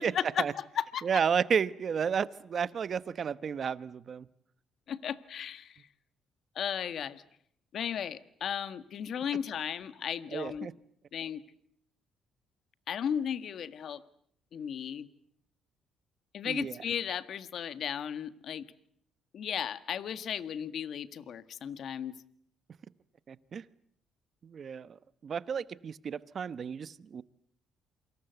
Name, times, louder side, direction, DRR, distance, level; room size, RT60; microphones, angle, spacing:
voice 1, 0.0-1.1 4.9-5.9 6.5-7.2 7.7-10.7 11.1-11.4 12.9-14.0 14.5-15.1 16.3-18.7 19.3-22.2, left 8 dB, 60° left, 13 dB, 1.6 m, -35 dB
voice 2, 1.0-4.3 10.3-10.7 16.4-16.8 23.3-23.6 24.4-25.0 25.2-27.2, right 7 dB, 45° right, 16 dB, 1.1 m, -32 dB
28.0 x 25.5 x 8.1 m, 0.67 s
cardioid pair, 105°, 0 cm